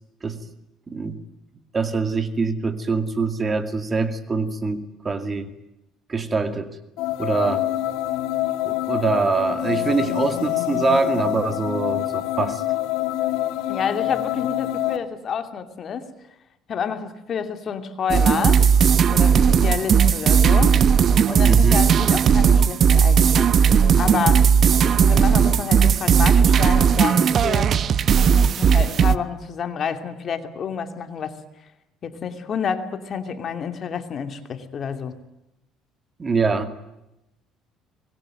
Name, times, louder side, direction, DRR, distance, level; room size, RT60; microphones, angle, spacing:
voice 1, 0.9-1.2 1.7-5.5 6.1-6.8 7.2-7.7 8.6-12.6 21.4-21.8 36.2-36.7, right 4 dB, 25° right, 10 dB, 2.3 m, -24 dB
sound 1, 7.0-15.0, left 14 dB, 80° left, 2.7 m, -26 dB
voice 2, 13.7-16.1 16.7-18.6 19.1-20.8 21.3-24.5 24.8-27.8 28.3-31.3 32.0-35.1, left 7 dB, 40° left, 8 dB, 2.7 m, -29 dB
sound 2, 18.1-29.2, right 7 dB, 45° right, 1.0 m, -16 dB
25.0 x 21.5 x 9.2 m, 0.90 s
cardioid pair, 125°, 0 cm